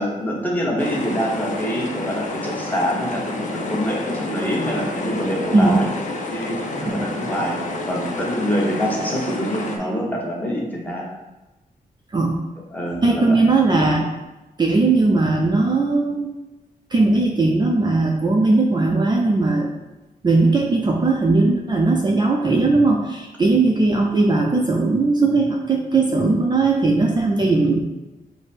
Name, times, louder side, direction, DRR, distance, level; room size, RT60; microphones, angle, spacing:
voice 1, 0.0-5.9 6.3-7.6 7.9-11.1 12.7-13.4, equal, 10° left, -3 dB, 1.0 m, -25 dB
sound 1, 0.8-9.8, left 2 dB, 55° left, 0.6 m, -29 dB
voice 2, 5.5-5.9 6.9-7.1 12.1-12.4 13.0-14.1 14.6-16.3 16.9-19.7 20.2-27.8, right 3 dB, 30° right, -1 dB, 0.4 m, -18 dB
4.9 x 2.1 x 4.2 m, 1.0 s
wide cardioid pair, 105°, 15 cm